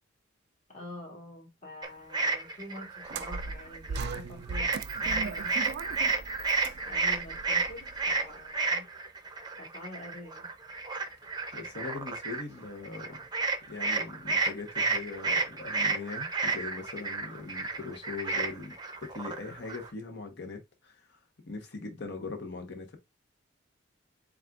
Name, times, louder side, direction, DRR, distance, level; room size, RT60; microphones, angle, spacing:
voice 1, 0.7-4.7 5.0-5.9 6.9-8.9 9.6-10.5, left 1 dB, 40° left, 2.1 m, -46 dB
sound 1, 1.8-4.2 4.5-19.9, right 3 dB, 20° right, 0.6 m, -31 dB
sound 2, 3.1-8.3, right 4 dB, 55° right, 0.3 m, -39 dB
voice 2, 11.5-13.3 13.7-18.7 19.0-21.2 21.4-23.0, left 4 dB, 60° left, 1.1 m, -41 dB
7.3 x 2.5 x 2.4 m
head